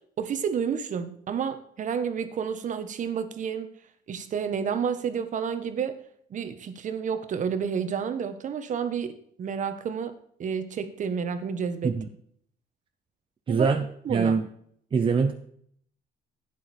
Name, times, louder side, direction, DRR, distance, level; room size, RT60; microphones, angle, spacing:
voice 1, 0.2-3.7 4.1-6.0 6.3-9.1 9.4-10.1 10.4-11.9 13.5-13.7 14.0-14.4, right 7 dB, 50° right, 9 dB, 1.4 m, -30 dB
voice 2, 13.5-14.5 14.9-15.3, right 5 dB, 30° right, 5 dB, 0.9 m, -24 dB
11.0 x 9.2 x 4.4 m, 0.65 s
cardioid pair, 110°, 17 cm